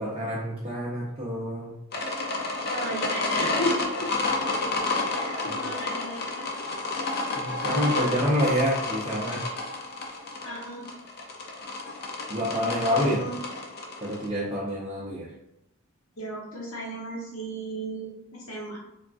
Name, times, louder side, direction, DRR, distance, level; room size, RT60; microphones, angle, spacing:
voice 1, 0.0-1.7 5.5-5.6 7.4-9.4 12.3-13.3 14.0-15.3, equal, 25° right, -7 dB, 0.5 m, -27 dB
sound 1, 1.9-14.3, left 2 dB, 45° left, 0.4 m, -30 dB
voice 2, 2.7-4.1 5.2-6.5 10.4-10.9 13.0-13.4 16.2-18.8, right 1 dB, 70° left, -4 dB, 1.0 m, -34 dB
3.5 x 2.3 x 2.4 m, 0.83 s
head